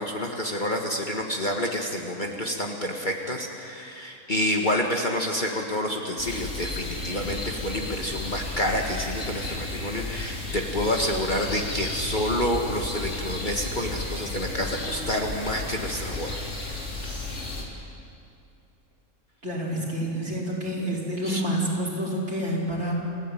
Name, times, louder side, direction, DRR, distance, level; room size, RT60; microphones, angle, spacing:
voice 1, 0.0-16.4 21.2-21.4, left 1 dB, 30° left, 1 dB, 1.9 m, -28 dB
sound 1, 6.2-17.6, left 2 dB, 50° left, 3.5 m, -33 dB
voice 2, 19.4-22.9, right 1 dB, 45° right, -4 dB, 5.3 m, -28 dB
28.5 x 15.5 x 9.1 m, 2.5 s
omnidirectional pair, 1.6 m